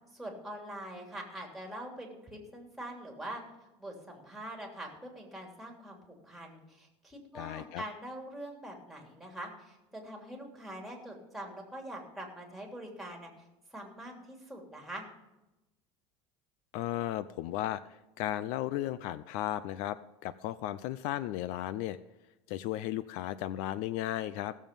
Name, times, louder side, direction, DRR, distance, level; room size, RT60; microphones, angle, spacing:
voice 1, 0.1-3.4 3.8-13.3 13.7-15.0, right 1 dB, ahead, 1 dB, 3.1 m, -44 dB
voice 2, 7.3-7.8 16.7-22.0 22.5-24.5, left 13 dB, 60° left, 16 dB, 0.5 m, -35 dB
16.5 x 7.3 x 5.3 m, 0.97 s
supercardioid pair, 130°, 14 cm